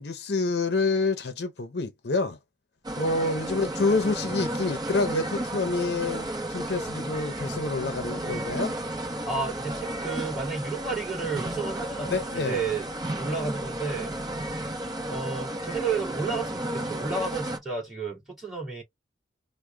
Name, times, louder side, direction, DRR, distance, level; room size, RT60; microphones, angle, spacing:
voice 1, 0.0-2.4 3.0-8.8 12.1-12.6, left 3 dB, 60° left, 0.6 m, -27 dB
sound 1, 2.8-17.6, right 1 dB, 20° right, 0.9 m, -33 dB
voice 2, 9.2-14.2 15.1-18.8, right 4 dB, ahead, 2.4 m, -32 dB
4.8 x 2.2 x 3.3 m
head